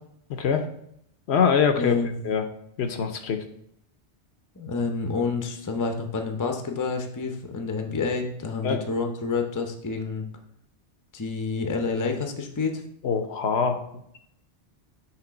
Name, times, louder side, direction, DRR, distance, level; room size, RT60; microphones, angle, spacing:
voice 1, 0.3-0.7 1.3-2.0 2.2-2.5 2.8-3.4 8.6-8.8 13.0-13.8, left 6 dB, 70° left, 6 dB, 0.9 m, -23 dB
voice 2, 1.8-2.1 4.6-10.3 11.1-12.8, left 4 dB, 20° left, 4 dB, 0.5 m, -28 dB
5.8 x 3.3 x 5.0 m, 0.73 s
omnidirectional pair, 1.2 m